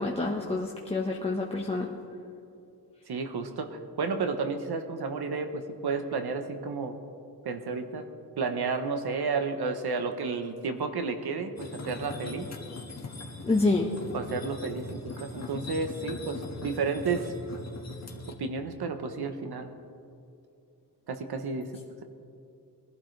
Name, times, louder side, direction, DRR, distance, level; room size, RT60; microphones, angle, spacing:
voice 1, 0.0-1.9 13.4-13.9, left 3 dB, 15° left, -2 dB, 1.2 m, -27 dB
voice 2, 3.1-7.0 7.4-8.1 8.4-12.5 14.1-17.3 18.4-19.7 21.1-21.7, right 4 dB, 70° right, 6 dB, 1.1 m, -32 dB
sound 1, 11.6-18.3, left 3 dB, 40° left, 1.9 m, -41 dB
22.5 x 12.0 x 3.3 m, 2.6 s
wide cardioid pair, 100°, 41 cm